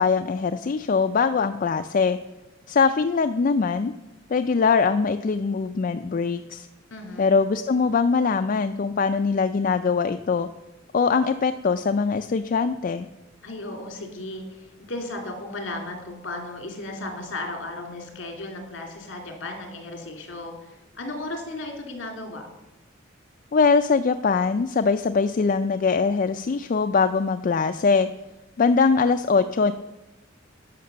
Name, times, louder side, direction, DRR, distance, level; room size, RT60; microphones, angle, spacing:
voice 1, 0.0-2.2 2.7-3.9 4.3-6.7 7.2-10.5 10.9-13.1 23.5-28.1 28.6-29.7, left 5 dB, 45° left, 8 dB, 0.4 m, -22 dB
voice 2, 6.9-7.4 13.4-22.5, left 2 dB, 65° left, 3 dB, 2.6 m, -35 dB
12.0 x 5.9 x 6.8 m, 0.96 s
head